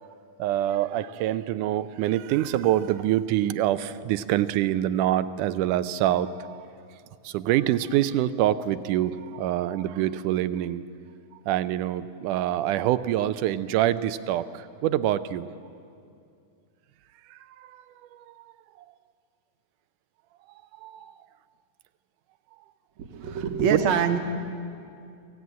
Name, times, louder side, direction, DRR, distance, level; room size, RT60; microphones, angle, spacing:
voice 1, 0.4-6.7 7.2-10.8 11.5-15.5 17.3-18.5 20.5-21.1 23.7-23.8, right 12 dB, 85° right, 14 dB, 2.2 m, -26 dB
voice 2, 23.0-24.2, right 7 dB, 65° right, 6 dB, 2.5 m, -25 dB
23.5 x 16.5 x 9.4 m, 2.4 s
omnidirectional pair, 3.5 m